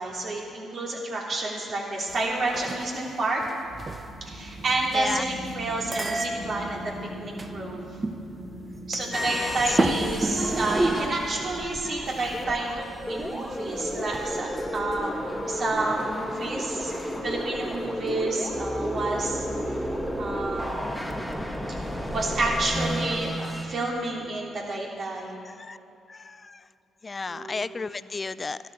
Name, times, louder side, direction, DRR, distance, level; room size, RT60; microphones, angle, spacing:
voice 1, 0.0-3.4 4.3-6.8 7.2-7.9 8.9-19.8 20.2-21.3 22.1-25.4 27.3-27.9, right 2 dB, 55° right, -2 dB, 2.8 m, -30 dB
sound 1, 2.1-3.1 3.4-5.1 5.5-5.6 5.9-7.5 8.0-8.2 8.7-9.5 9.8-11.1 11.5-11.6 14.1-14.4, right 2 dB, 30° right, 0.9 m, -30 dB
sound 2, 3.4-15.5, equal, 80° right, 3.3 m, -43 dB
voice 2, 4.9-5.2 9.4-9.8 11.9-12.0 25.4-25.8 26.1-26.6 27.0-28.6, left 4 dB, 35° left, 16 dB, 0.4 m, -33 dB
sound 3, 9.1-23.6, equal, ahead, 1.6 m, -32 dB
12.5 x 12.5 x 4.5 m, 2.8 s
supercardioid pair, 50°, 0 cm